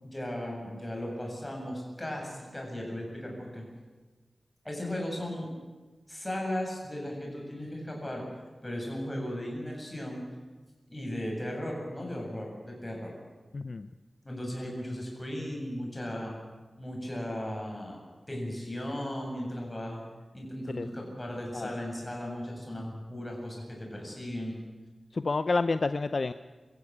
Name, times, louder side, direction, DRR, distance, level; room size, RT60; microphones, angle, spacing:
voice 1, 0.0-3.6 4.6-5.5 6.1-8.2 8.6-10.2 10.9-13.1 14.2-16.3 16.8-18.0 18.3-20.0 20.3-24.6, left 1 dB, 15° left, -1 dB, 7.5 m, -36 dB
voice 2, 13.5-13.9 20.8-20.9 21.5-21.7 25.1-26.3, left 3 dB, 55° left, 11 dB, 0.6 m, -29 dB
24.0 x 15.0 x 8.8 m, 1.3 s
wide cardioid pair, 95°, 0 cm